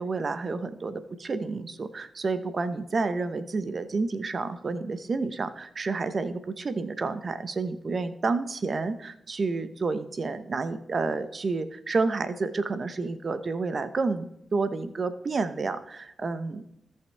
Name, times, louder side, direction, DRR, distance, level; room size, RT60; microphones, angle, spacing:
voice 1, 0.0-16.6, right 3 dB, 55° right, 11 dB, 0.9 m, -30 dB
17.5 x 5.8 x 3.4 m, 0.78 s
cardioid pair, 55°, 0 cm